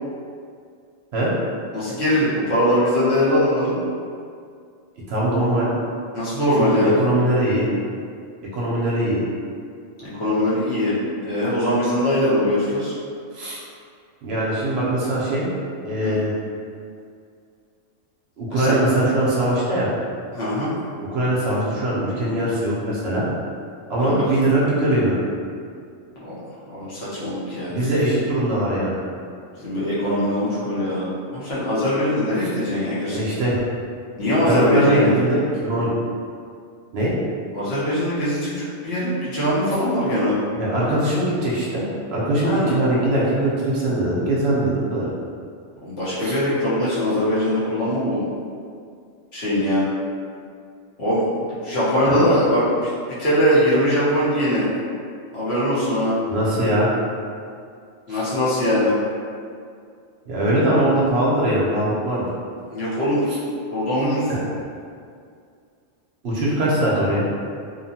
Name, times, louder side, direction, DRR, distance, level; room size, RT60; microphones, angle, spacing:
voice 1, 1.7-3.8 6.1-7.0 10.0-10.9 11.2-12.9 16.0-16.2 18.5-18.8 20.3-20.7 24.0-24.3 26.2-26.4 26.7-27.9 29.6-31.1 31.3-33.2 34.2-35.2 37.5-38.5 38.8-40.4 42.4-42.7 45.8-48.3 49.3-49.9 51.0-52.9 53.2-54.6 55.3-56.1 58.1-58.9 62.7-63.2 63.7-64.3, left 1 dB, 55° left, -10 dB, 1.0 m, -21 dB
voice 2, 5.1-5.7 6.6-7.7 8.5-9.2 13.3-13.6 14.2-15.5 15.8-16.3 18.4-19.9 21.0-23.3 23.9-25.2 27.7-29.0 33.1-33.6 34.4-35.9 36.9-37.1 40.5-45.1 46.2-46.3 52.0-52.2 56.3-56.9 58.1-58.2 60.3-62.3 64.3-64.4 66.2-67.3, right 1 dB, 60° right, -6 dB, 0.8 m, -21 dB
2.8 x 2.1 x 2.8 m, 2.3 s
omnidirectional pair, 1.4 m